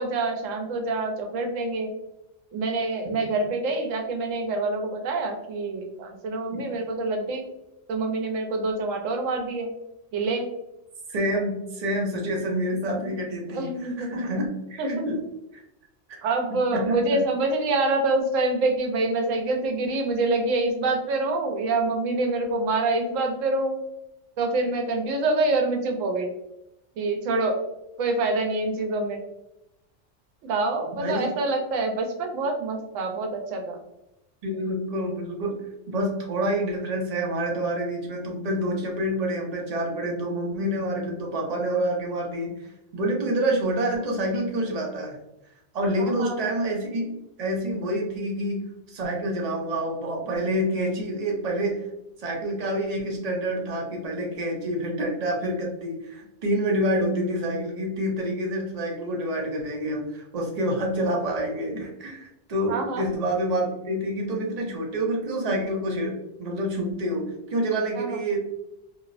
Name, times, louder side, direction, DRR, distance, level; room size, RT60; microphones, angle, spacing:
voice 1, 0.0-1.9 2.5-7.5 7.9-9.7 10.1-10.5 13.5-14.1 14.8-15.1 16.2-23.8 24.4-26.3 27.0-27.6 28.0-29.2 30.4-33.8 46.0-46.6 62.7-63.0 67.9-68.2, right 2 dB, 85° right, 3 dB, 1.0 m, -26 dB
voice 2, 11.1-15.2 15.5-15.6 16.1-16.2 16.7-17.2 31.0-31.3 34.4-35.5 35.9-45.2 45.7-47.1 47.4-51.8 52.2-68.4, right 1 dB, 50° right, -1 dB, 0.5 m, -27 dB
2.7 x 2.0 x 2.4 m, 0.88 s
omnidirectional pair, 1.3 m